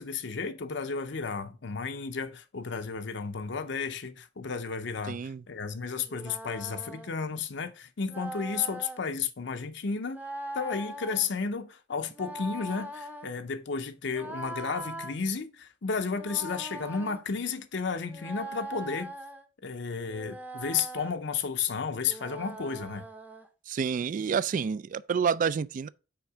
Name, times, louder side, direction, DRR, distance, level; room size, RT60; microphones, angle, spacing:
voice 1, 0.0-5.2 5.5-10.2 10.5-19.1 19.6-23.0, left 5 dB, 70° left, 0.7 m, -33 dB
voice 2, 5.1-5.4 23.7-25.9, right 6 dB, 45° right, 0.3 m, -29 dB
sound 1, 6.1-7.1 8.1-9.0 10.1-11.3 12.1-13.3 14.1-15.2 16.1-17.2 18.1-19.4 20.1-21.1 22.1-23.5, right 1 dB, 10° right, 0.7 m, -41 dB
5.8 x 4.4 x 4.8 m
head